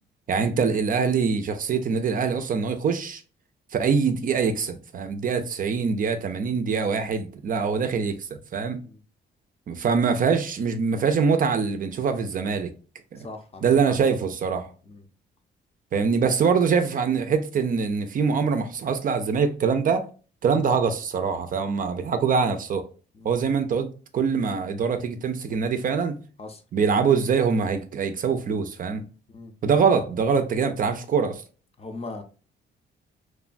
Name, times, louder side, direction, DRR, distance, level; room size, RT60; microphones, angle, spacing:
voice 1, 0.3-3.2 3.7-8.8 9.7-12.7 13.1-13.3 13.6-14.7 15.9-20.1 20.4-22.8 23.2-23.9 24.1-26.2 26.7-29.0 29.6-31.4, right 5 dB, 45° right, 0.4 m, -24 dB
voice 2, 13.2-14.0 14.9-15.0 23.1-23.3 26.4-26.6 29.3-29.5 31.8-32.2, left 3 dB, 30° left, 0.5 m, -39 dB
3.0 x 2.1 x 2.5 m
cardioid pair, 90°, 20 cm